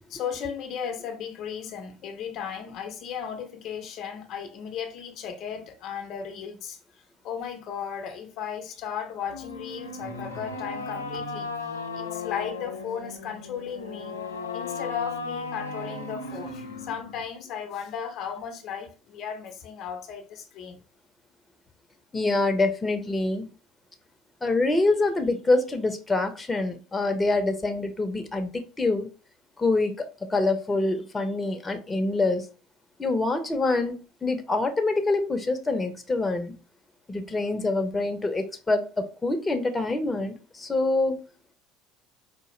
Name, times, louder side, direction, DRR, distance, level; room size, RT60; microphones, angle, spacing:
voice 1, 0.1-6.8 7.2-11.5 11.9-14.2 14.5-20.8, left 7 dB, 50° left, 0.7 m, -35 dB
sound 1, 9.3-17.3, left 3 dB, 85° left, 0.5 m, -36 dB
voice 2, 22.1-23.5 24.4-28.5 28.8-29.1 29.6-29.9 30.3-32.5 33.0-34.0 34.2-36.5 37.1-41.2, left 2 dB, 15° left, 0.8 m, -25 dB
4.8 x 2.4 x 3.1 m
figure-of-eight pair, 65°, 0 cm